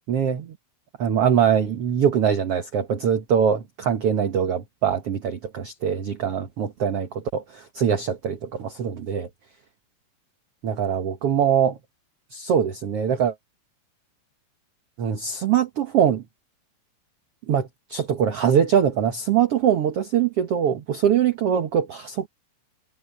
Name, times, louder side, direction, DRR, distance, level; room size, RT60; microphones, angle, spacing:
voice 1, 0.1-0.6 1.0-9.3 10.6-11.8 12.3-13.3 15.0-16.2 17.5-22.3, right 8 dB, 60° right, 1.5 m, -23 dB
omnidirectional pair, 4.5 m